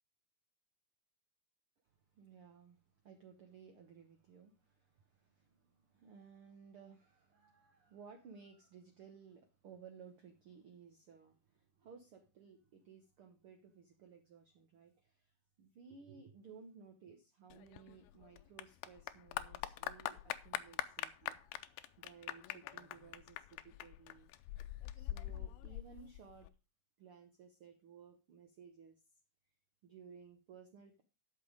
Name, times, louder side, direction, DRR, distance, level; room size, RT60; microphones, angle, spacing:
voice 1, 2.1-2.8 3.0-15.3 15.6-24.3 24.9-26.5 27.0-29.0 29.8-31.0, right 6 dB, 80° right, 6 dB, 1.2 m, -58 dB
Clapping / Applause, 17.5-26.5, left 14 dB, 90° left, 2.5 m, -44 dB
11.0 x 6.3 x 5.0 m, 0.30 s
omnidirectional pair, 4.1 m